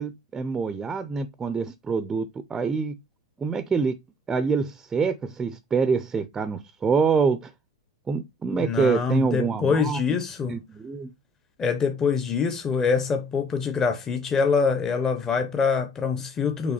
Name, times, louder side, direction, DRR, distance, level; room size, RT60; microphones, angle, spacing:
voice 1, 0.0-2.9 3.4-4.0 4.3-7.5 8.1-10.0 10.5-11.1, right 5 dB, 15° right, 0.6 m, -26 dB
voice 2, 8.6-10.6 11.6-16.7, left 5 dB, 20° left, 0.8 m, -24 dB
6.1 x 3.5 x 4.3 m
hypercardioid pair, 130°, 3 cm